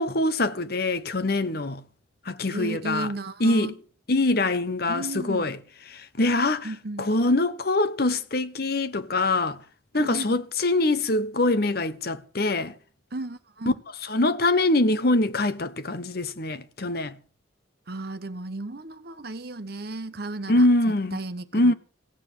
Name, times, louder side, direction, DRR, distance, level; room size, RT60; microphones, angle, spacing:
voice 1, 0.0-1.8 2.2-3.1 3.4-3.7 4.1-5.6 5.9-6.7 7.0-9.6 9.9-12.7 14.0-17.2 20.5-21.2 21.5-21.7, left 2 dB, 55° left, 1.0 m, -24 dB
voice 2, 2.5-3.8 4.9-5.5 6.6-7.1 9.9-10.4 13.1-13.8 17.9-20.7 21.1-21.7, right 2 dB, 55° right, 1.1 m, -34 dB
16.0 x 9.2 x 6.9 m
head